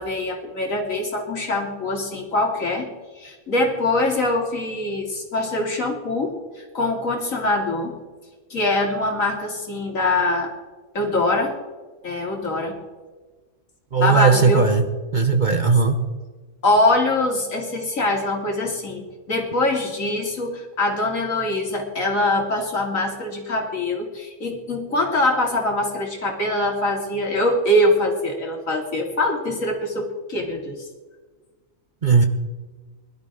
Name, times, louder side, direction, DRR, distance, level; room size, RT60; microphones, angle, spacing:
voice 1, 0.0-2.9 3.2-7.9 8.5-10.5 10.9-11.5 12.0-12.7 14.0-14.6 16.6-30.9, left 2 dB, 65° left, 1 dB, 3.1 m, -23 dB
voice 2, 13.9-14.8 15.1-16.0 32.0-32.2, right 5 dB, 40° right, 6 dB, 0.9 m, -17 dB
21.5 x 12.5 x 3.7 m, 1.3 s
omnidirectional pair, 1.5 m